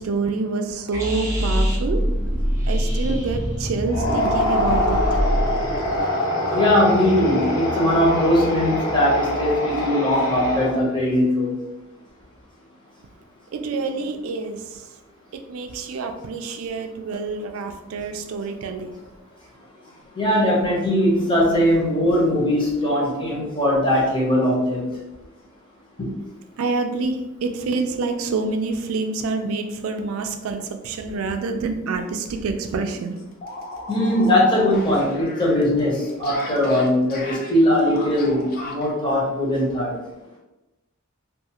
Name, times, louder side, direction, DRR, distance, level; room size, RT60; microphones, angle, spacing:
voice 1, 0.0-2.1 2.7-5.2 13.5-14.8 15.5-19.0 26.6-33.2, right 3 dB, 85° right, 6 dB, 0.4 m, -27 dB
sound 1, 0.9-6.0, equal, 15° right, 0.5 m, -24 dB
sound 2, 3.8-11.0, left 1 dB, 75° left, 0.8 m, -24 dB
voice 2, 6.5-11.5 20.2-24.9 26.0-26.1 33.9-39.9, left 1 dB, 25° left, -5 dB, 0.8 m, -20 dB
sound 3, 31.9-32.1 32.4-32.5 32.8-38.9, left 1 dB, 45° left, 0.5 m, -37 dB
2.4 x 2.3 x 2.8 m, 1.0 s
head